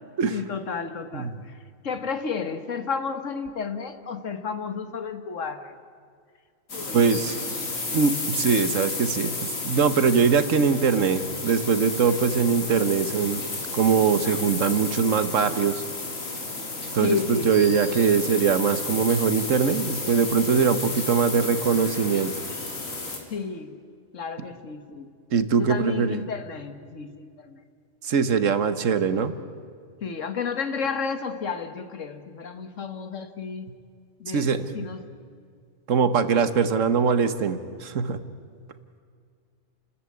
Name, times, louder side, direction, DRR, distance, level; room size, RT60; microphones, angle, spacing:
voice 1, 0.3-1.3 1.8-5.7 6.7-7.2 7.6-7.7 17.0-17.7 23.3-23.8 24.1-25.1 25.6-27.6 30.0-33.7 34.2-34.5 34.7-35.0, left 5 dB, 70° left, 9 dB, 1.7 m, -32 dB
sound 1, 6.7-23.2, left 3 dB, 90° left, 3.2 m, -32 dB
voice 2, 6.9-7.3 7.9-13.4 13.7-15.8 16.9-22.3 25.3-26.2 28.0-29.3 34.3-34.7 35.9-38.2, right 6 dB, 75° right, 12 dB, 1.4 m, -22 dB
29.5 x 13.5 x 9.6 m, 2.2 s
omnidirectional pair, 1.3 m